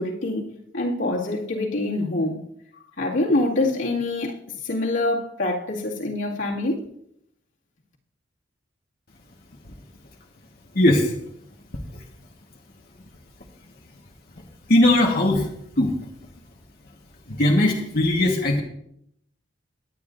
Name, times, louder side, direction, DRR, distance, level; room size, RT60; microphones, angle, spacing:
voice 1, 0.0-2.5 3.0-4.4 4.6-6.8, left 2 dB, 85° left, 2.2 m, -25 dB
voice 2, 10.7-11.1 14.7-15.5 15.8-15.9 17.3-18.6, left 1 dB, 50° left, 1.4 m, -19 dB
20.0 x 9.2 x 2.6 m
head